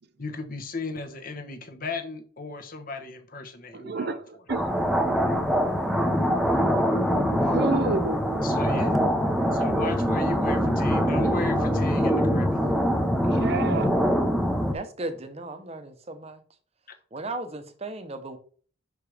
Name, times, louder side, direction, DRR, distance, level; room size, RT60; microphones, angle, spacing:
voice 1, 0.2-4.4 8.4-8.9 9.5-12.7, left 3 dB, 45° left, 1.1 m, -36 dB
voice 2, 3.7-4.2 4.5-4.7 7.4-8.2 13.3-13.9, right 4 dB, 50° right, 0.5 m, -29 dB
sound 1, 4.5-14.7, equal, ahead, 0.7 m, -23 dB
voice 3, 14.7-16.4 17.1-18.4, right 2 dB, 30° right, 0.9 m, -36 dB
6.2 x 4.9 x 5.0 m
head